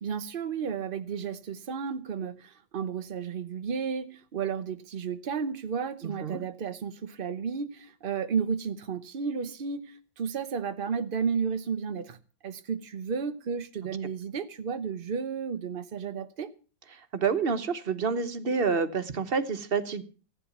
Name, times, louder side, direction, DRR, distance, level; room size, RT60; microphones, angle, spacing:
voice 1, 0.0-12.2 12.4-16.5, right 6 dB, 70° right, 0.5 m, -33 dB
voice 2, 6.0-6.4 16.9-20.0, right 5 dB, 35° right, 1.0 m, -28 dB
15.5 x 9.2 x 7.1 m
omnidirectional pair, 2.1 m